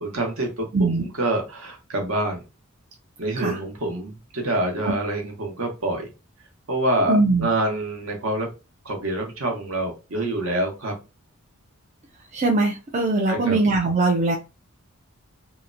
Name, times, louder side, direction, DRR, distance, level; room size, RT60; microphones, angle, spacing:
voice 1, 0.0-2.4 3.2-6.1 6.7-8.5 8.8-10.9 13.3-13.6, right 1 dB, 65° right, 2 dB, 0.9 m, -26 dB
voice 2, 0.7-1.0 3.4-3.6 7.1-7.5 12.3-14.4, right 3 dB, 30° right, 1 dB, 0.3 m, -21 dB
2.8 x 2.0 x 2.5 m, 0.28 s
head